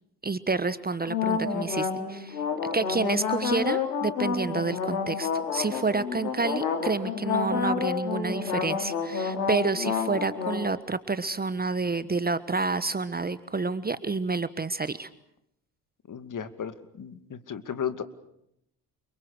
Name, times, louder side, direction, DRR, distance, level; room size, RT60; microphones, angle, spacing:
voice 1, 0.2-2.4 2.7-15.1, right 4 dB, 20° right, 14 dB, 1.3 m, -29 dB
sound 1, 1.0-10.6, left 6 dB, 85° left, 3.2 m, -29 dB
voice 2, 16.1-18.0, left 8 dB, 40° left, 11 dB, 2.5 m, -35 dB
29.0 x 25.0 x 6.7 m, 0.77 s
figure-of-eight pair, 50°, 48 cm